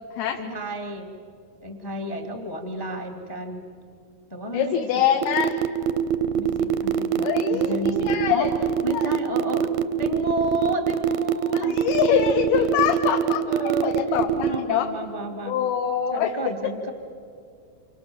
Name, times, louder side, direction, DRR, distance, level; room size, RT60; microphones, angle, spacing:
voice 1, 0.3-1.1 1.6-3.7 4.3-5.0 6.3-8.5 8.8-9.7 10.0-11.8 12.4-12.8 13.5-13.9 14.3-15.6 16.1-16.9, equal, 20° left, 4 dB, 0.6 m, -31 dB
voice 2, 4.5-5.6 7.2-8.5 8.9-9.1 11.5-13.4 13.8-14.9 15.5-16.4, left 9 dB, 75° left, 3 dB, 3.1 m, -24 dB
sound 1, 5.2-14.6, right 9 dB, 75° right, 2.2 m, -23 dB
29.0 x 27.5 x 7.1 m, 2.4 s
omnidirectional pair, 4.9 m